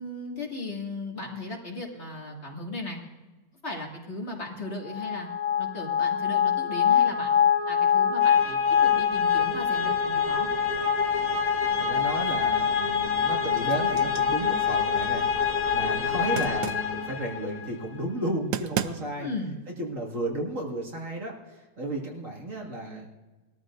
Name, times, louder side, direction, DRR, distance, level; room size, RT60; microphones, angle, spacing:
voice 1, 0.0-3.0 3.6-5.3 5.6-7.4 7.7-10.5 19.2-19.6, left 2 dB, 40° left, -1 dB, 2.5 m, -36 dB
sound 1, 4.9-17.7, left 7 dB, 55° left, 2.2 m, -25 dB
voice 2, 11.8-15.3 15.7-19.3 19.8-23.1, right 1 dB, 50° right, -1 dB, 2.4 m, -33 dB
sound 2, 12.1-12.7 13.1-15.3 16.4-17.0 18.2-18.3 18.5-19.3, right 10 dB, 75° right, 1.2 m, -35 dB
21.5 x 13.5 x 2.6 m, 1.2 s
omnidirectional pair, 1.8 m